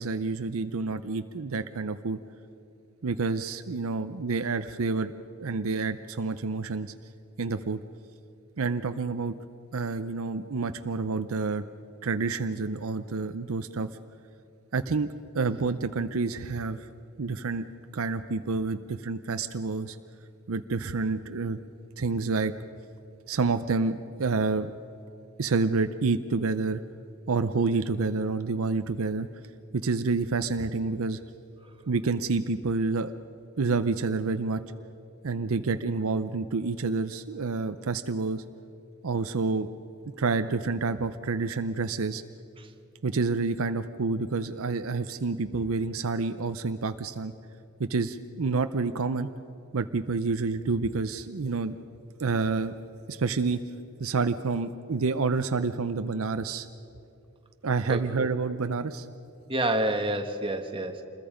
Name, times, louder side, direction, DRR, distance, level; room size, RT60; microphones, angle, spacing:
voice 1, 0.0-2.2 3.0-5.1 5.4-6.9 7.4-7.8 8.6-9.4 9.7-11.6 12.0-13.9 14.7-15.1 15.3-16.9 17.2-17.7 17.9-20.0 20.5-21.6 22.0-22.5 23.3-24.7 25.4-26.8 27.3-29.3 29.7-31.2 31.9-33.1 33.6-34.6 35.2-38.4 39.0-39.7 40.2-42.2 43.0-47.3 47.8-49.3 49.7-51.8 52.2-52.7 53.1-53.6 54.0-56.7 57.6-59.1, right 4 dB, 65° right, 9 dB, 0.6 m, -28 dB
voice 2, 57.9-58.3 59.5-61.0, right 1 dB, 25° right, 4 dB, 1.4 m, -29 dB
27.0 x 21.0 x 5.1 m, 2.6 s
head